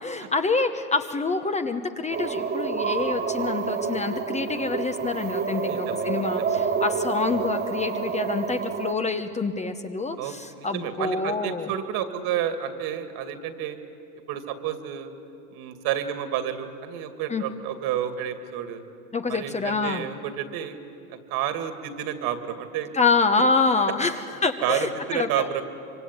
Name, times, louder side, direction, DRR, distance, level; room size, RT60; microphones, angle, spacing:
voice 1, 0.0-11.7 17.3-17.4 19.1-20.1 22.9-25.5, left 4 dB, 15° left, 7 dB, 1.0 m, -26 dB
sound 1, 2.1-8.9, right 5 dB, 20° right, 1.3 m, -28 dB
voice 2, 5.7-6.1 6.4-6.6 10.2-13.8 14.3-15.1 15.5-18.8 19.3-20.8 21.1-22.9 24.6-25.6, right 10 dB, 50° right, 8 dB, 2.6 m, -30 dB
25.0 x 24.0 x 9.6 m, 2.7 s
hypercardioid pair, 105°, 46 cm